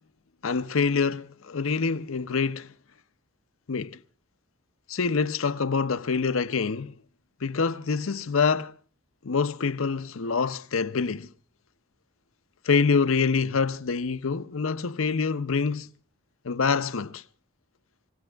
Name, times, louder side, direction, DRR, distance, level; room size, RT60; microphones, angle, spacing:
voice 1, 0.4-2.7 3.7-4.0 4.9-7.0 7.4-8.7 9.2-11.3 12.6-15.9 16.4-17.2, left 5 dB, 85° left, 0.7 m, -26 dB
24.5 x 16.5 x 3.4 m
head